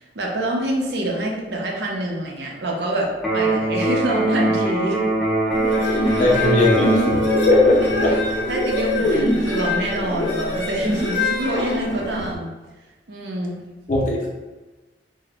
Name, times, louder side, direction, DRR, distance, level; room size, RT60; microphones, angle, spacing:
voice 1, 0.1-5.1 5.7-6.4 7.8-8.2 8.5-12.5 13.1-13.6, right 1 dB, 75° right, -1 dB, 0.6 m, -26 dB
Electric guitar, 3.2-11.2, right 1 dB, ahead, 0.5 m, -24 dB
sound 1, 5.5-12.3, left 2 dB, 85° left, 0.6 m, -24 dB
voice 2, 6.2-7.0 7.3-8.1 13.9-14.3, left 2 dB, 45° left, -2 dB, 0.6 m, -18 dB
3.7 x 2.1 x 3.3 m, 1.2 s
head